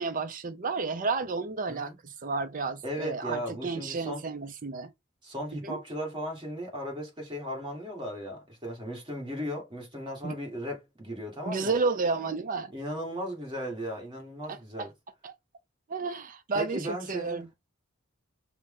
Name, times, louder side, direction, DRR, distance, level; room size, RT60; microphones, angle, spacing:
voice 1, 0.0-4.9 5.6-5.8 10.2-10.4 11.5-12.7 14.5-14.9 15.2-15.3 15.9-17.5, right 4 dB, 40° right, 0.5 m, -31 dB
voice 2, 2.8-4.2 5.2-11.7 12.7-14.9 16.5-17.5, equal, 20° right, 1.7 m, -36 dB
5.7 x 2.1 x 3.6 m
head